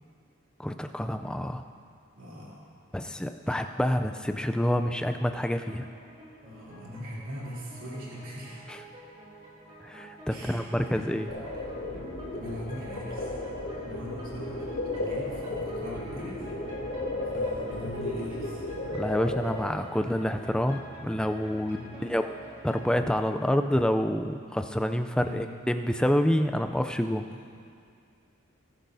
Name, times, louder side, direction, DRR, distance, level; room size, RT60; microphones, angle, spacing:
voice 1, 0.6-1.6 2.9-5.9 8.7-8.8 9.8-11.3 18.9-22.3 22.6-27.3, equal, 5° left, 7 dB, 0.3 m, -28 dB
voice 2, 2.2-2.7 3.4-3.6 6.4-8.8 10.3-11.6 12.3-13.3 13.9-16.5 16.7-18.6 21.7-22.1 25.2-25.6 27.3-27.4, equal, 65° right, -8 dB, 3.1 m, -42 dB
sound 1, 4.3-23.1, right 1 dB, 25° right, 2.7 m, -48 dB
sound 2, 11.3-19.6, left 2 dB, 85° left, 3.1 m, -34 dB
20.5 x 10.5 x 2.7 m, 2.4 s
head